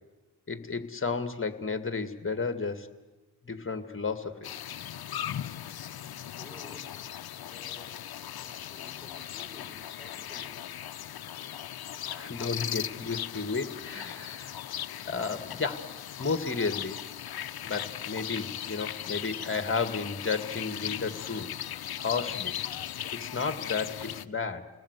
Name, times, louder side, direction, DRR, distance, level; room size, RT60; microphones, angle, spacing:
voice 1, 0.5-2.9 3.4-4.6 12.1-14.6 15.0-15.9 16.2-17.0 17.6-21.5 22.0-22.6 23.1-24.7, left 4 dB, 35° left, 10 dB, 2.0 m, -33 dB
sound 1, 4.4-24.3, left 11 dB, 80° left, 0.8 m, -38 dB
voice 2, 6.4-6.8 7.3-10.5, left 2 dB, ahead, -3 dB, 6.8 m, -52 dB
29.5 x 19.5 x 8.2 m, 1.2 s
cardioid pair, 80°, 36 cm